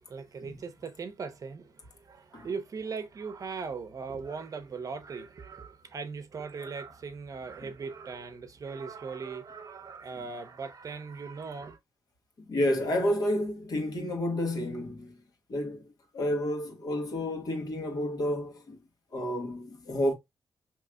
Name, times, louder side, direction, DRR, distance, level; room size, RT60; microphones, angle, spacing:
voice 1, 0.1-11.8, right 5 dB, 55° right, 0.7 m, -39 dB
voice 2, 12.4-15.2 15.5-18.8 19.1-20.1, left 1 dB, 60° left, 1.5 m, -30 dB
4.6 x 3.0 x 2.3 m
cardioid pair, 75°, 7 cm